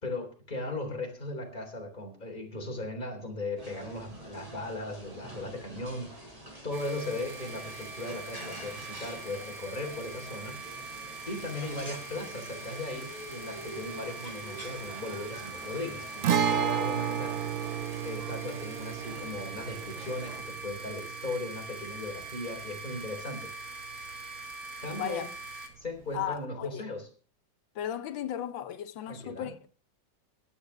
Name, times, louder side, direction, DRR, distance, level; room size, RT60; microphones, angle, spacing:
voice 1, 0.0-10.6 11.3-17.4 18.0-23.5 24.8-25.3 25.8-27.0 29.1-29.5, left 2 dB, 20° left, 3.9 m, -37 dB
sound 1, 3.6-20.4, equal, 20° right, 4.4 m, -46 dB
sound 2, 6.7-25.7, right 3 dB, 80° right, 2.8 m, -43 dB
Guitar, 16.2-23.9 24.1-24.2 26.2-26.4, right 9 dB, 60° right, 0.8 m, -33 dB
voice 2, 24.9-25.3 26.1-26.8 27.7-29.7, left 10 dB, 75° left, 1.5 m, -35 dB
22.0 x 9.1 x 3.4 m
omnidirectional pair, 2.2 m